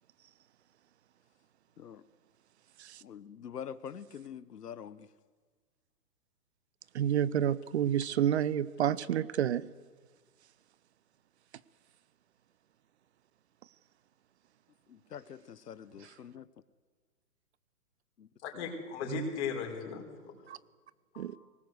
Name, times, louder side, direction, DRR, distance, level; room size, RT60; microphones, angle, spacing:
voice 1, 3.0-5.1 14.9-16.5 18.2-18.3 18.5-18.7, left 8 dB, 80° left, 1.1 m, -45 dB
voice 2, 6.9-9.6 16.0-16.1 19.1-19.3 20.5-20.6 21.2-21.4, right 10 dB, 45° right, 0.7 m, -30 dB
voice 3, 18.4-20.3 21.1-21.2, left 6 dB, 45° left, 5.1 m, -37 dB
23.0 x 19.0 x 8.0 m
hypercardioid pair, 135°, 47 cm